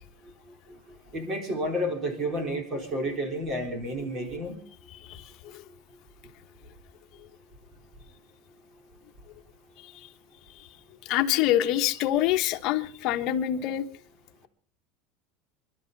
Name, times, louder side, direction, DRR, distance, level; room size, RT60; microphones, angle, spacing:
voice 1, 1.1-4.5, equal, 30° right, 5 dB, 4.1 m, -30 dB
voice 2, 4.9-5.6 9.8-10.1 11.0-13.9, left 12 dB, 45° left, 6 dB, 1.3 m, -26 dB
28.0 x 12.5 x 4.1 m, 0.42 s
supercardioid pair, 155°, 0 cm